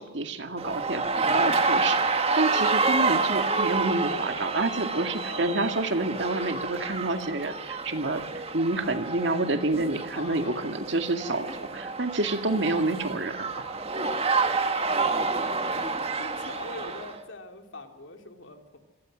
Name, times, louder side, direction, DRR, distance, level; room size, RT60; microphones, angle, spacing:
voice 1, 0.0-13.8, right 2 dB, 65° right, 6 dB, 2.1 m, -28 dB
sound 1, 0.6-17.2, right 4 dB, 30° right, 1.7 m, -28 dB
voice 2, 5.2-5.7 10.1-10.6 14.8-15.1 15.6-18.8, left 2 dB, 75° left, 4 dB, 3.0 m, -43 dB
26.5 x 18.0 x 6.3 m, 1.1 s
head